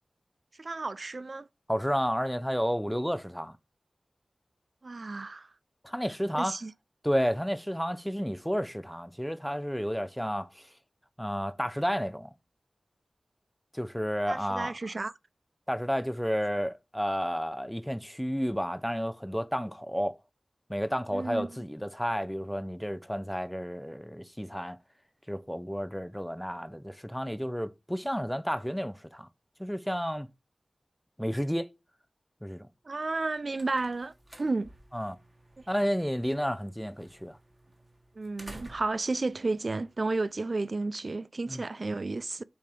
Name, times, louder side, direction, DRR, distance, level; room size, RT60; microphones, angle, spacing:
voice 1, 0.6-1.5 4.8-5.5 6.3-6.7 14.3-15.1 21.1-21.5 32.9-34.1 34.4-34.7 38.2-42.4, right 3 dB, 60° right, 0.4 m, -32 dB
voice 2, 1.7-3.6 5.8-6.6 7.0-10.7 11.2-12.3 13.7-14.7 15.7-20.2 20.7-24.8 25.3-29.3 29.6-30.3 31.2-31.7 32.4-32.7 34.9-35.2 35.7-37.4 41.5-41.6, equal, ahead, 0.7 m, -31 dB
sound 1, 33.1-40.5, right 1 dB, 30° right, 1.5 m, -54 dB
7.0 x 2.8 x 4.9 m
cardioid pair, 45°, 0 cm